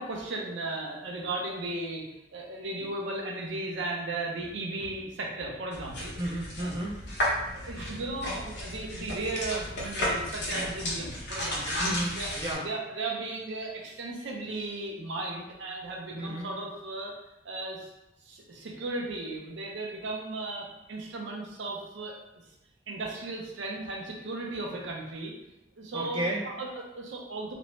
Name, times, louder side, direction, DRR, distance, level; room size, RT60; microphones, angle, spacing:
voice 1, 0.0-2.0 2.3-6.1 6.6-6.7 7.5-11.8 12.2-12.3 12.6-17.1 17.4-17.9 18.2-22.1 22.9-25.3 25.8-26.2 26.6-27.5, right 2 dB, 85° right, -1 dB, 0.6 m, -36 dB
sound 1, 5.7-12.5, equal, 65° left, 0.8 m, -33 dB
voice 2, 6.2-7.0 11.8-12.6 16.1-16.5 25.9-26.4, right 1 dB, 25° right, -3 dB, 0.5 m, -32 dB
2.5 x 2.1 x 3.0 m, 0.88 s
head